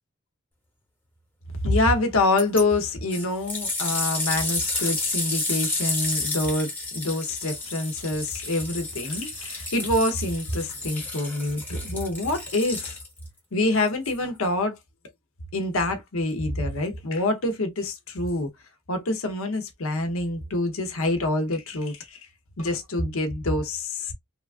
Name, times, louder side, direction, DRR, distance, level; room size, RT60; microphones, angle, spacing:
voice 1, 1.6-13.0 13.5-14.8 15.5-18.5 18.9-22.2 22.6-24.1, left 2 dB, 75° left, 0.8 m, -26 dB
sound 1, 2.4-2.6 3.1-13.3 14.0-14.1, left 2 dB, 10° left, 0.9 m, -31 dB
3.2 x 2.3 x 2.4 m
head